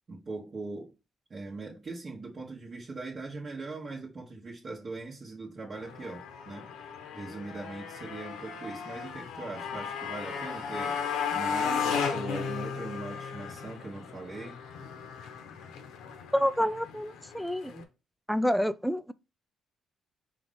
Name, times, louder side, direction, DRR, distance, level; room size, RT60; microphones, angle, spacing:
voice 1, 0.1-0.9 1.3-6.7 7.1-11.0 11.3-14.6, right 3 dB, 40° right, 1.1 m, -40 dB
Motorcycle, 5.7-17.8, left 6 dB, 90° left, 0.9 m, -35 dB
voice 2, 16.3-17.8 18.3-19.1, equal, ahead, 0.3 m, -28 dB
4.6 x 2.4 x 3.7 m
cardioid pair, 90°, 0 cm